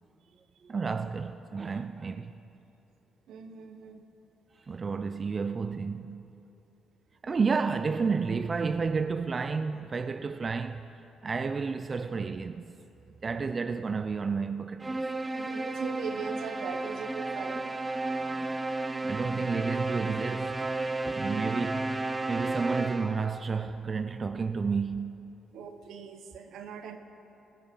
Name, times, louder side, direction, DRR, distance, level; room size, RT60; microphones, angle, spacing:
voice 1, 0.6-2.3 4.6-6.3 7.2-12.7 13.2-15.1 18.1-18.5 19.0-20.7 21.0-25.4, right 5 dB, 35° right, 0.5 m, -31 dB
voice 2, 3.3-4.0 15.3-17.8 25.5-27.0, right 6 dB, 80° right, 1.2 m, -40 dB
sound 1, 14.8-23.3, right 2 dB, 20° right, 0.8 m, -33 dB
18.5 x 13.5 x 5.3 m
cardioid pair, 90°, 0 cm